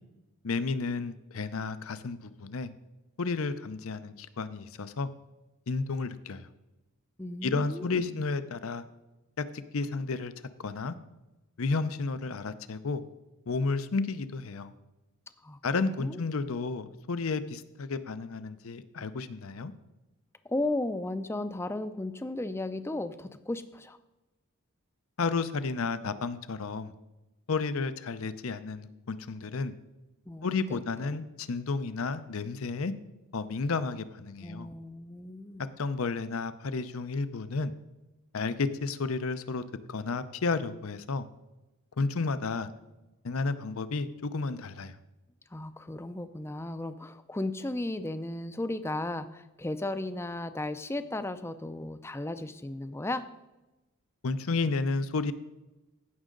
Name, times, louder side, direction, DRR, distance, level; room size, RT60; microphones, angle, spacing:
voice 1, 0.4-2.7 3.2-5.1 5.7-6.5 7.4-8.8 9.5-10.3 10.6-11.0 11.6-13.0 13.5-14.7 15.6-19.7 25.2-26.9 27.5-29.7 30.4-32.9 33.3-34.7 35.8-37.7 38.3-39.6 39.9-41.3 42.0-42.7 43.2-44.9 54.2-55.3, left 4 dB, 70° left, 13 dB, 0.6 m, -32 dB
voice 2, 7.2-8.2 15.4-16.2 20.4-24.0 30.3-30.8 34.4-35.7 45.5-53.2, left 2 dB, 10° left, 11 dB, 0.4 m, -35 dB
16.0 x 6.3 x 3.8 m, 1.0 s
head